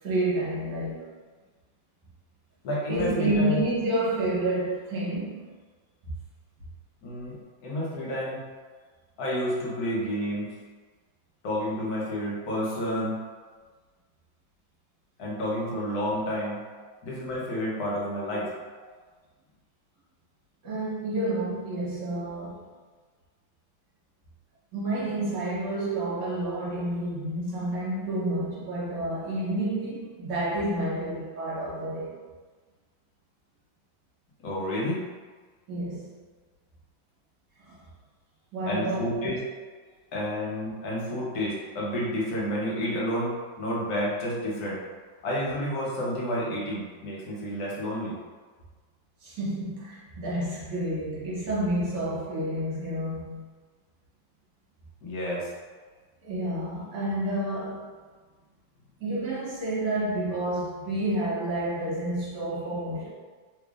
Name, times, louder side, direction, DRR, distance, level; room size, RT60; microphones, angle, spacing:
voice 1, 0.0-1.0 2.9-5.4 20.6-22.6 24.7-32.2 35.7-36.1 37.6-37.8 38.5-39.4 49.2-53.5 56.2-57.9 59.0-63.1, right 1 dB, 65° right, -7 dB, 1.6 m, -29 dB
voice 2, 2.6-3.6 7.0-7.3 7.6-8.4 9.2-10.5 11.4-13.2 15.2-16.6 17.0-18.5 34.4-35.0 38.7-39.4 40.1-44.8 45.2-48.1 55.0-55.5, equal, 60° left, -5 dB, 1.1 m, -30 dB
3.5 x 3.3 x 2.4 m, 1.4 s
omnidirectional pair, 2.1 m